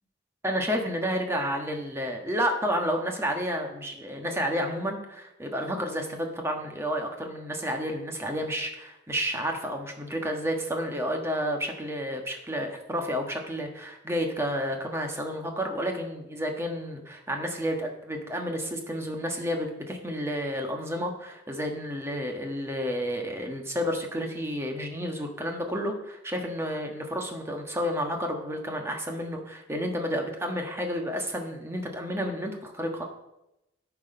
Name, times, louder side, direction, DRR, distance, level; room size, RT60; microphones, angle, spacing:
voice 1, 0.4-33.0, equal, 15° right, 3 dB, 1.4 m, -31 dB
13.0 x 4.9 x 5.5 m, 0.89 s
head